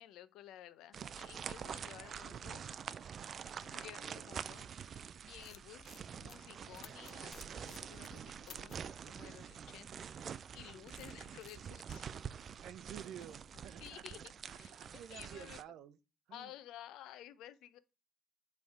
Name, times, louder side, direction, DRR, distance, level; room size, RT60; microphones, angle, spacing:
voice 1, 0.0-12.1 13.8-14.2 14.5-14.8 15.1-15.6 16.3-17.8, left 12 dB, 80° left, 0.7 m, -54 dB
sound 1, 0.9-15.6, right 7 dB, 40° right, 0.3 m, -47 dB
sound 2, 2.7-4.9 5.2-8.9 10.2-14.7, left 10 dB, 55° left, 0.3 m, -60 dB
Fire, 7.3-11.0, right 1 dB, 5° right, 0.9 m, -67 dB
voice 2, 12.6-14.0 14.7-16.0 16.3-16.5, right 10 dB, 70° right, 0.7 m, -51 dB
9.4 x 3.4 x 5.1 m
cardioid pair, 160°, 0 cm